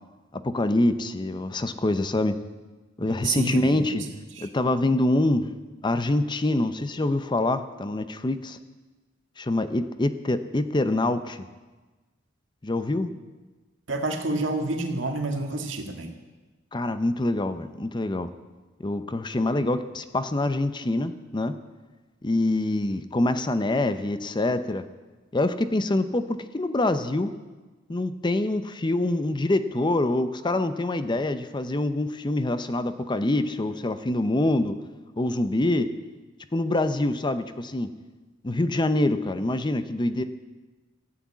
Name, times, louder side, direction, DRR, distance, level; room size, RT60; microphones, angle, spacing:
voice 1, 0.3-2.4 3.0-4.0 4.4-5.5 5.8-8.6 9.4-11.4 12.6-13.1 16.7-18.3 18.8-21.6 22.2-24.8 25.3-27.3 27.9-34.8 35.2-35.9 36.5-37.9 38.4-40.2, left 2 dB, 25° left, 11 dB, 0.6 m, -25 dB
voice 2, 3.2-4.0 4.3-4.5 13.9-16.1, right 2 dB, 80° right, 4 dB, 1.8 m, -28 dB
14.0 x 8.6 x 8.4 m, 1.2 s
head